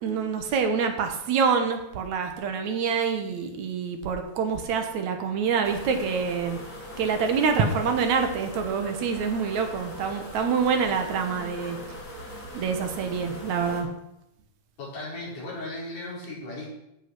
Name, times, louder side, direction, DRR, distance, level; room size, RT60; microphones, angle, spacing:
voice 1, 0.0-6.6 7.0-11.8 12.5-13.9, right 6 dB, 70° right, 6 dB, 2.4 m, -26 dB
sound 1, 5.6-13.8, equal, 25° left, 2.8 m, -40 dB
voice 2, 14.8-16.7, left 2 dB, 80° left, -6 dB, 6.2 m, -36 dB
15.5 x 5.8 x 6.0 m, 0.83 s
omnidirectional pair, 3.6 m